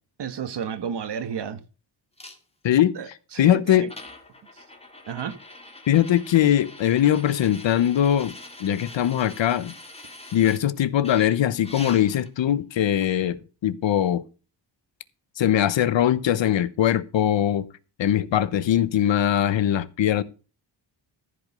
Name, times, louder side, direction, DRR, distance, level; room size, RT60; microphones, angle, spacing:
voice 1, 0.2-1.6 2.9-3.9 4.5-4.6 5.1-5.4, right 7 dB, 65° right, 1.6 m, -32 dB
sound 1, 2.2-2.4 3.4-3.5 3.9-10.6 11.0-12.3 13.0-13.1, left 2 dB, 15° left, 2.3 m, -44 dB
voice 2, 2.6-3.0 3.4-3.9 5.9-8.3 8.6-9.7 10.3-14.2 15.4-17.7 18.0-20.2, left 11 dB, 75° left, 1.0 m, -21 dB
14.5 x 5.2 x 6.7 m
wide cardioid pair, 125°, 45 cm